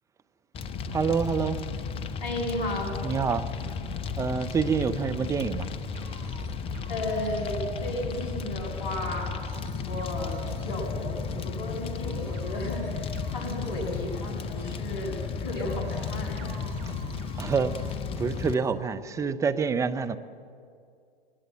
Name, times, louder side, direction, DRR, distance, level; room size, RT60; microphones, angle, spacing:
Fire, 0.5-18.5, left 5 dB, 20° left, 0.9 m, -34 dB
voice 1, 0.9-1.6 3.0-3.5 4.2-5.7 17.4-20.2, right 5 dB, 10° right, 0.7 m, -27 dB
voice 2, 2.2-2.9 6.9-9.4 9.9-16.5, left 1 dB, 40° left, 7.5 m, -34 dB
sound 1, 5.9-18.7, right 5 dB, 40° right, 2.9 m, -51 dB
20.5 x 20.0 x 8.1 m
figure-of-eight pair, 110°, 31 cm